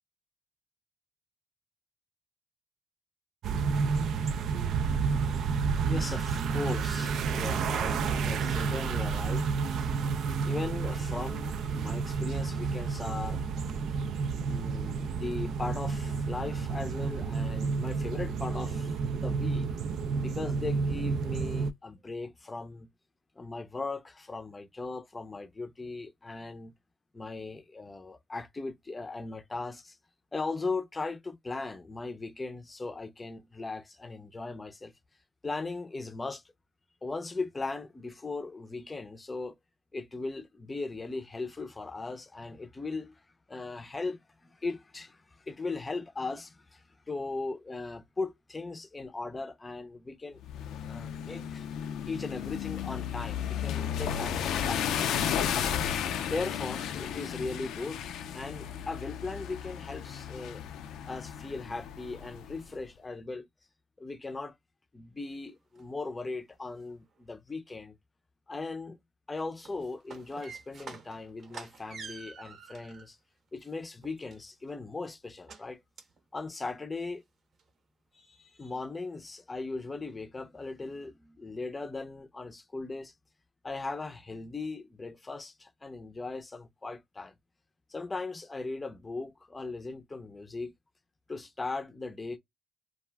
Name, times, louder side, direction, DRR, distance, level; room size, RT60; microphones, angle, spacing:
sound 1, 3.4-21.7, right 5 dB, 75° right, 0.3 m, -30 dB
voice 1, 5.9-9.5 9.8-9.9 10.4-13.5 14.4-19.7 20.2-22.9 23.4-26.7 27.1-30.0 30.3-34.9 35.4-36.4 37.0-39.6 39.9-43.2 43.5-50.4 50.9-51.7 52.1-55.1 56.1-60.6 61.1-63.5 64.0-64.5 64.9-68.0 68.5-69.0 69.3-73.2 73.5-75.8 76.3-77.2 78.1-83.1 83.6-87.3 87.9-90.7 91.3-92.4, left 3 dB, 25° left, 0.5 m, -38 dB
sound 2, 50.4-62.6, left 9 dB, 85° left, 0.3 m, -34 dB
sound 3, 65.3-65.4 65.8-65.9 66.2-66.8 69.5-73.1 73.6-74.7 75.5-75.6 76.0-76.2 76.5-76.6 77.0-77.1 77.5-77.6, right 5 dB, 55° right, 0.7 m, -47 dB
2.4 x 2.1 x 3.3 m
cardioid pair, 90°, 0 cm